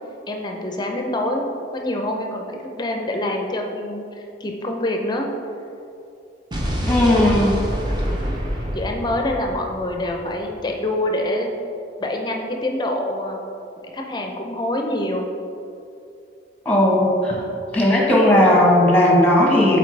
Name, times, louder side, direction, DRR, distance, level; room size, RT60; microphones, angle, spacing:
voice 1, 0.3-1.5 1.7-5.3 6.8-7.3 7.8-7.9 8.7-11.5 12.0-13.4 13.9-15.3 17.3-17.4, left 1 dB, 25° left, 2 dB, 0.5 m, -26 dB
Explosion, 6.5-10.6, equal, 25° right, 0.7 m, -26 dB
voice 2, 6.9-7.5 16.6-17.3 17.7-19.8, left 1 dB, 5° left, -3 dB, 1.1 m, -16 dB
7.4 x 4.2 x 3.3 m, 2.6 s
head